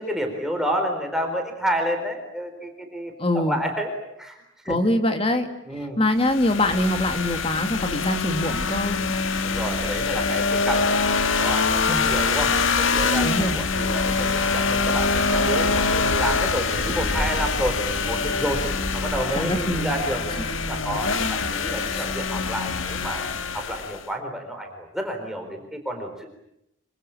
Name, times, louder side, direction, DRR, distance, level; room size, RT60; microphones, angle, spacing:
voice 1, 0.0-3.9 4.2-4.4 4.6-4.8 5.7-6.0 9.4-11.0 11.4-17.8 18.1-18.6 18.9-23.2 23.5-26.3, equal, ahead, 3 dB, 4.1 m, -30 dB
voice 2, 3.2-3.6 4.7-5.5 5.7-9.0 11.9-12.1 13.2-13.6 19.4-19.9 21.8-22.1, left 1 dB, 25° left, 7 dB, 2.3 m, -24 dB
sound 1, 6.2-24.1, left 4 dB, 75° left, 1.7 m, -24 dB
26.5 x 25.0 x 8.9 m, 0.83 s
head